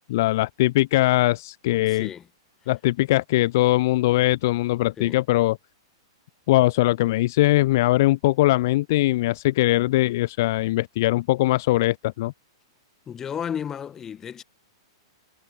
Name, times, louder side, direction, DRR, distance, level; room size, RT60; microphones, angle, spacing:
voice 1, 0.1-2.1 2.7-5.6 6.5-12.3, left 17 dB, 45° left, 0.5 m, -21 dB
voice 2, 1.9-2.3 5.0-5.2 13.1-14.4, left 8 dB, 20° left, 1.3 m, -33 dB
figure-of-eight pair, 105°, 2 cm